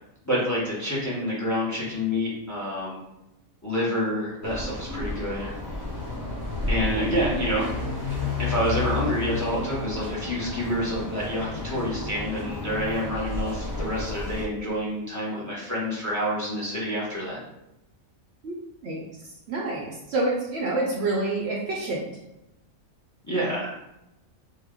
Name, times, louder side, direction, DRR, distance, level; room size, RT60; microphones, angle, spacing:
voice 1, 0.2-3.0 3.6-5.5 6.7-7.7 8.4-17.4 23.2-23.7, equal, 15° left, -6 dB, 0.7 m, -28 dB
sound 1, 4.4-14.4, left 3 dB, 20° right, 0.7 m, -31 dB
voice 2, 19.5-22.0, right 2 dB, 60° right, -2 dB, 0.8 m, -27 dB
3.6 x 2.2 x 3.5 m, 0.88 s
omnidirectional pair, 1.4 m